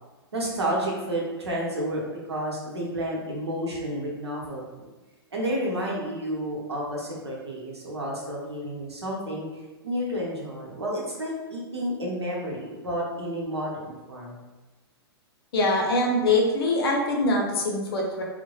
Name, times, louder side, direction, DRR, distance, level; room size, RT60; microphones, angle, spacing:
voice 1, 0.3-4.9 5.3-14.4, equal, 85° right, -3 dB, 0.7 m, -31 dB
voice 2, 15.5-18.2, left 2 dB, 65° left, -1 dB, 0.6 m, -23 dB
3.0 x 2.1 x 2.2 m, 1.2 s
figure-of-eight pair, 110°, 13 cm